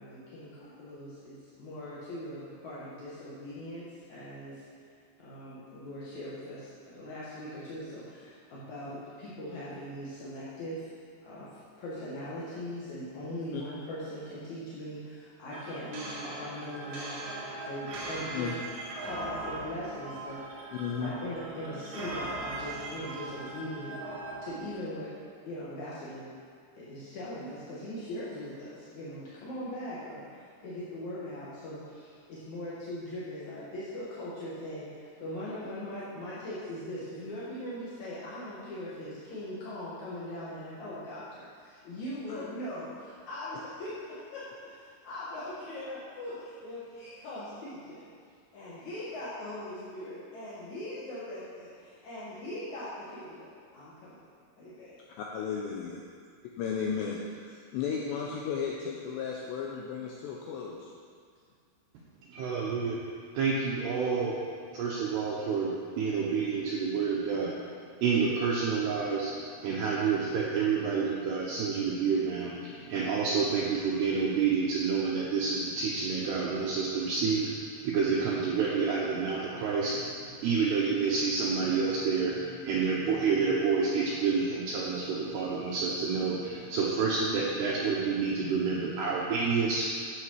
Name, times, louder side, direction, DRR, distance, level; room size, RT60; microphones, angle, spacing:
voice 1, 0.0-4.6 5.2-10.9 11.2-11.5 11.8-18.5 19.0-20.7 21.0-24.0 24.4-25.1 25.5-26.3 26.7-48.1 48.5-54.2 54.6-54.9, left 1 dB, 65° left, -9 dB, 1.9 m, -40 dB
sound 1, 15.5-24.8, right 2 dB, 55° right, 2.1 m, -39 dB
voice 2, 20.7-21.1 42.3-42.4 55.2-56.0 56.6-60.9 87.1-87.4, left 6 dB, 85° left, -2 dB, 2.5 m, -35 dB
voice 3, 62.3-63.0 63.3-64.4 64.7-67.5 68.0-69.3 69.6-80.1 80.4-89.8, right 5 dB, 80° right, -4 dB, 2.4 m, -29 dB
13.0 x 7.6 x 4.7 m, 2.2 s
omnidirectional pair, 6.0 m